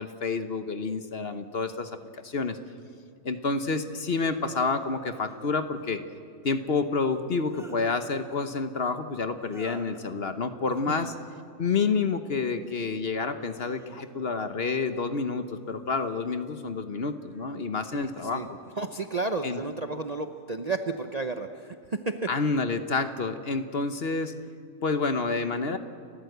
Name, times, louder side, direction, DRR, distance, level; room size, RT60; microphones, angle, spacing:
voice 1, 0.0-2.6 3.2-6.0 6.4-11.1 11.6-18.6 19.4-19.6 22.3-24.3 24.8-25.8, left 4 dB, 45° left, 9 dB, 1.1 m, -29 dB
sound 1, 2.6-2.7 5.0-5.6 7.1-7.8 9.4-10.1 11.6-12.1 12.6-13.1 13.5-14.4 15.6-16.2 16.8-18.9 19.9-20.4 21.0-21.6, equal, ahead, 1.8 m, -53 dB
voice 2, 17.9-18.5 18.8-22.2, right 3 dB, 35° right, 6 dB, 0.7 m, -32 dB
30.0 x 14.0 x 8.0 m, 2.2 s
omnidirectional pair, 1.5 m